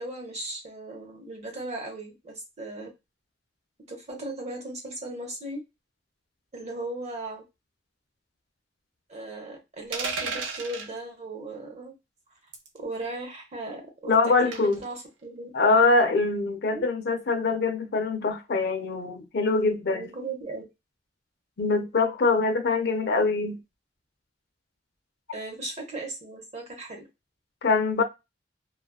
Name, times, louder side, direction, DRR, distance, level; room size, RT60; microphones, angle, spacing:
voice 1, 0.0-2.9 3.9-5.6 6.5-7.4 9.1-11.9 12.8-15.5 16.7-16.9 19.9-20.6 25.3-27.0, right 2 dB, 35° right, 0.8 m, -37 dB
sound 1, 9.9-10.9 12.5-12.8 14.5-14.8, right 4 dB, 90° right, 0.6 m, -32 dB
voice 2, 14.1-14.8 15.5-20.1 21.6-23.6 27.6-28.0, left 3 dB, 60° left, 0.5 m, -23 dB
2.4 x 2.3 x 2.2 m
head